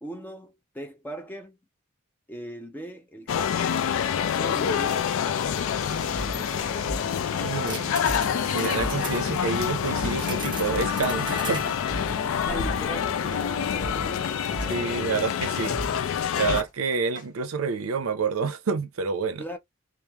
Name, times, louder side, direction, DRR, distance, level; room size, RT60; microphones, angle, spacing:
voice 1, 0.0-1.6 2.3-3.7 4.1-5.1 12.3-15.0 19.4-19.6, right 1 dB, 10° left, 0.5 m, -39 dB
sound 1, 3.3-16.6, left 8 dB, 65° left, 0.3 m, -27 dB
sound 2, 5.4-14.3, right 2 dB, 20° right, 0.7 m, -40 dB
sound 3, 6.2-17.3, right 1 dB, 40° left, 1.4 m, -36 dB
voice 2, 7.4-8.0 8.5-11.8 14.7-19.4, right 5 dB, 80° right, 0.5 m, -28 dB
3.0 x 2.0 x 2.3 m
head